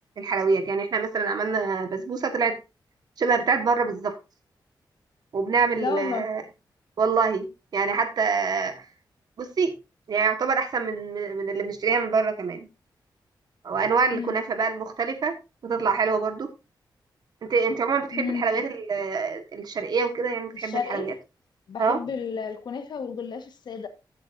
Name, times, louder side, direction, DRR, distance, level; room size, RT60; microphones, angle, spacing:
voice 1, 0.2-2.6 3.2-4.2 5.3-6.4 7.0-7.5 7.7-8.8 9.4-9.7 10.1-12.7 13.6-15.4 15.6-16.5 17.5-21.1 21.8-22.0, right 5 dB, 60° right, 1.6 m, -25 dB
voice 2, 5.8-6.3 14.1-14.4 18.1-18.4 20.5-21.1 21.7-23.9, left 6 dB, 70° left, 1.5 m, -32 dB
14.5 x 8.1 x 2.7 m
wide cardioid pair, 160°, 8 cm